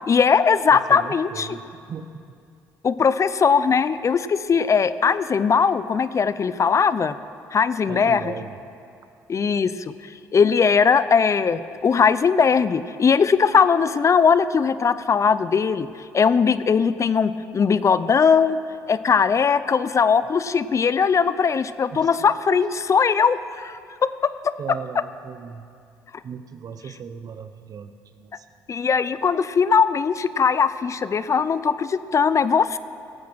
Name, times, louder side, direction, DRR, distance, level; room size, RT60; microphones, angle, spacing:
voice 1, 0.1-1.6 2.8-7.1 7.5-8.3 9.3-9.9 10.3-15.9 16.1-18.6 18.9-23.8 24.4-24.5 28.7-32.8, left 6 dB, 40° left, 15 dB, 0.5 m, -19 dB
voice 2, 0.7-2.2 7.9-8.6 21.9-22.6 24.6-25.7 26.2-28.5, right 6 dB, 55° right, 10 dB, 0.9 m, -37 dB
17.5 x 8.5 x 6.2 m, 2.4 s
supercardioid pair, 60°, 8 cm